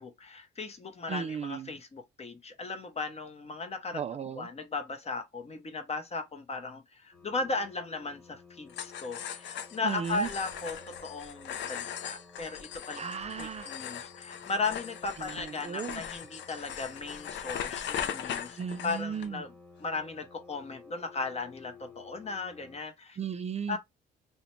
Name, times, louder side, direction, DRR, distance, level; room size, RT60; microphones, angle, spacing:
voice 1, 0.0-4.0 4.3-13.0 13.4-18.6 18.8-19.5 19.8-23.2 23.7-23.8, left 3 dB, 30° left, 0.7 m, -36 dB
voice 2, 1.1-1.8 3.9-4.5 9.8-10.3 13.0-13.7 15.2-16.0 18.6-19.4 23.2-23.8, right 7 dB, 35° right, 0.3 m, -35 dB
sound 1, 7.1-22.8, left 3 dB, 5° left, 1.2 m, -54 dB
sound 2, 8.7-19.3, left 9 dB, 65° left, 0.4 m, -39 dB
2.4 x 2.1 x 3.0 m
cardioid pair, 90°, 20 cm